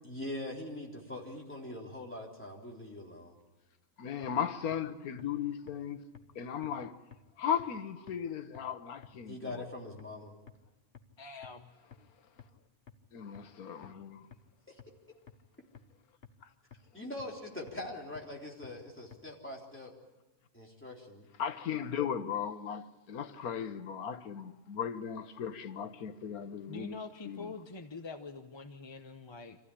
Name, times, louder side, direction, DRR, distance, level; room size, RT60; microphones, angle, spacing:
voice 1, 0.0-3.3 9.2-10.3 14.7-14.8 16.9-19.9 20.5-21.3, left 1 dB, 10° left, 3.6 m, -42 dB
voice 2, 4.0-6.0 6.3-7.0 7.4-9.6 13.1-14.3 21.4-27.0 27.2-27.5, left 8 dB, 85° left, 1.5 m, -36 dB
sound 1, 4.2-4.3 4.7-4.8 5.2-5.3 5.7-5.8 6.1-6.2 6.6-6.7 7.1-7.2 7.6-7.7 8.1-8.2 8.5-8.6 9.0-9.1 9.5-9.6 10.0-10.1 10.5-10.6 10.9-11.0 11.4-11.5 11.9-12.0 12.4-12.5 12.9-13.0 13.3-13.4 13.8-13.9 14.3-14.4 14.8-14.9 15.3-15.4 15.7-15.8 16.2-16.3 16.7-16.8 17.2-17.3 17.7-17.8 18.1-18.2 18.6-18.7 19.1-19.2, left 8 dB, 45° left, 1.4 m, -51 dB
voice 3, 11.2-11.7 26.7-29.6, left 4 dB, 25° left, 0.7 m, -45 dB
25.5 x 15.5 x 9.9 m
omnidirectional pair, 1.5 m